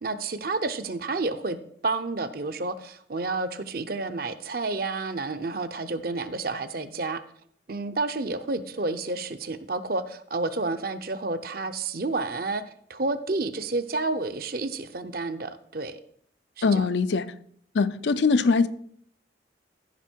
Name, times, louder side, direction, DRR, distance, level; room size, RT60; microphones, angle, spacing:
voice 1, 0.0-1.6 1.8-7.2 7.7-12.6 12.9-16.0 16.6-16.9, right 3 dB, 50° right, 0.7 m, -30 dB
voice 2, 16.6-17.3 17.7-18.7, left 4 dB, 75° left, 0.5 m, -22 dB
14.5 x 5.6 x 4.5 m
head